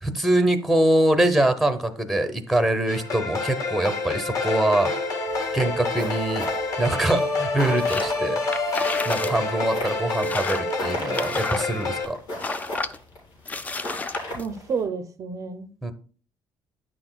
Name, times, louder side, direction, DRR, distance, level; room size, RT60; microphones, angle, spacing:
voice 1, 0.0-4.9 5.5-6.5 6.8-8.4 9.1-12.2 15.8-15.9, right 1 dB, ahead, 0.7 m, -23 dB
sound 1, 2.9-12.1, left 3 dB, 45° left, 1.8 m, -27 dB
sound 2, 5.3-14.8, left 1 dB, 80° left, 4.0 m, -37 dB
sound 3, 7.8-8.1 8.4-9.4 9.6-9.7 10.1-12.1 12.4-13.0 13.4-14.5, left 3 dB, 20° left, 0.4 m, -31 dB
voice 2, 14.3-15.7, right 5 dB, 40° right, 0.5 m, -30 dB
9.5 x 6.0 x 2.3 m
cardioid pair, 140°, 8 cm